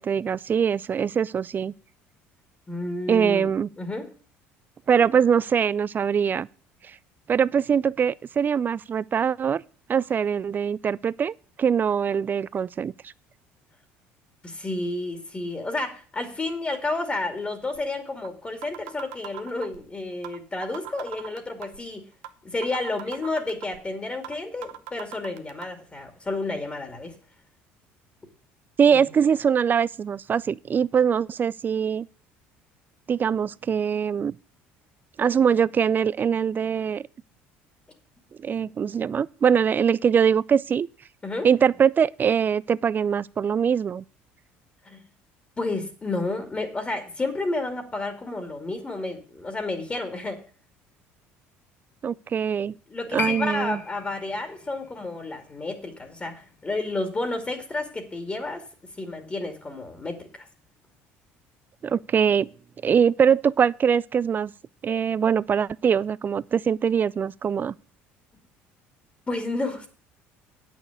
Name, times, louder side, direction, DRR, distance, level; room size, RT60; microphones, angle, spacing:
voice 1, 0.0-1.7 3.1-3.7 4.9-6.5 6.9-7.0 7.3-9.6 9.9-13.1 28.8-32.1 33.1-34.4 35.2-37.1 38.4-40.9 41.4-44.0 52.0-52.7 53.1-53.8 61.8-62.5 62.8-64.5 64.8-67.7, right 7 dB, 35° right, 0.4 m, -22 dB
voice 2, 2.7-4.1 14.4-22.1 22.4-27.1 28.9-29.0 41.2-41.5 44.8-45.0 45.6-50.4 52.9-58.6 59.0-60.5 69.3-69.9, left 2 dB, 20° left, 2.4 m, -31 dB
sound 1, 17.7-17.8 18.2-18.3 18.6-19.8 20.2-20.4 20.6-21.8 22.2-22.3 22.6-23.8 24.2-24.4 24.6-25.7, right 14 dB, 80° right, 1.0 m, -38 dB
Piano, 53.2-60.1 60.4-60.5, left 7 dB, 45° left, 0.9 m, -39 dB
8.7 x 6.4 x 8.1 m
supercardioid pair, 80°, 6 cm